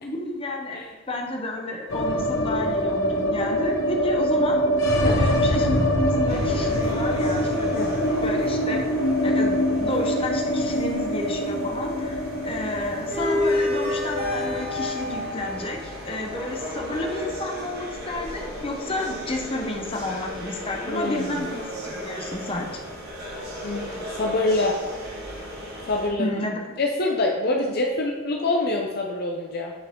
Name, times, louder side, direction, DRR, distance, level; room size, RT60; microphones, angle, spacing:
voice 1, 0.0-4.6 5.1-7.7 8.2-8.8 9.2-22.8 26.2-26.8 27.5-27.7, left 1 dB, 25° left, 1 dB, 0.9 m, -31 dB
sound 1, 1.9-18.0 18.3-18.4 18.6-19.3, equal, 70° left, 1.0 m, -25 dB
sound 2, 6.3-26.1, left 1 dB, 45° right, 1.8 m, -33 dB
voice 2, 20.9-21.4 23.6-24.8 25.9-26.3 26.8-29.7, left 2 dB, 45° left, 1 dB, 0.6 m, -25 dB
7.9 x 4.6 x 3.7 m, 1.2 s
head